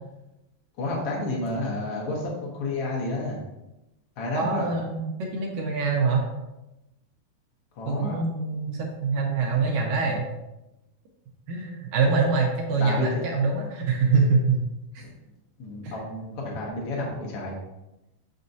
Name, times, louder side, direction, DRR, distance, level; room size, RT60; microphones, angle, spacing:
voice 1, 0.8-3.4 4.2-4.7 7.8-8.2 12.8-13.3 15.6-17.5, left 2 dB, 60° left, -3 dB, 1.6 m, -30 dB
voice 2, 4.3-6.3 7.9-10.2 11.5-14.6 14.9-15.0 15.8-16.0, right 4 dB, 75° right, 0 dB, 2.2 m, -24 dB
6.7 x 6.2 x 2.7 m, 0.95 s
omnidirectional pair, 4.5 m